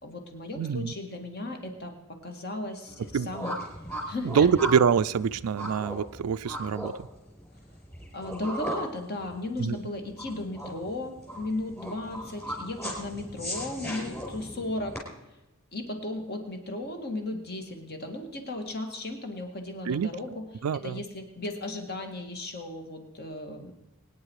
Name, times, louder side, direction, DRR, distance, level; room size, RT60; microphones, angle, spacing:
voice 1, 0.0-3.6 4.1-4.5 8.1-15.0 15.7-20.4 20.7-23.8, left 2 dB, 50° left, 5 dB, 2.2 m, -36 dB
voice 2, 0.6-0.9 3.1-3.3 4.2-6.9 9.6-9.8 19.9-20.1 20.6-21.0, right 7 dB, 80° right, 12 dB, 0.4 m, -25 dB
sound 1, 2.9-15.0, equal, 10° left, 4.7 m, -37 dB
23.5 x 9.8 x 4.8 m, 0.94 s
head